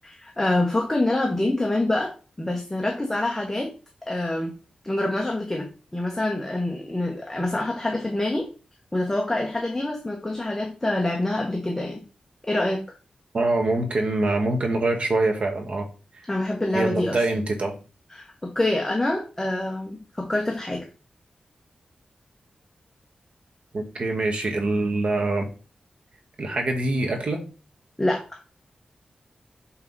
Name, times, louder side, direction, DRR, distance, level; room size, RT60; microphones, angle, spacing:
voice 1, 0.0-3.7 4.1-4.5 4.8-5.7 5.9-8.5 8.9-12.0 12.5-12.8 16.3-17.2 18.1-20.9 28.0-28.2, left 1 dB, 15° left, 1 dB, 1.1 m, -26 dB
voice 2, 13.3-15.9 16.7-17.7 23.7-25.5 26.4-27.4, right 2 dB, 55° right, 3 dB, 1.4 m, -24 dB
6.3 x 5.6 x 4.0 m, 0.35 s
wide cardioid pair, 145°, 2 cm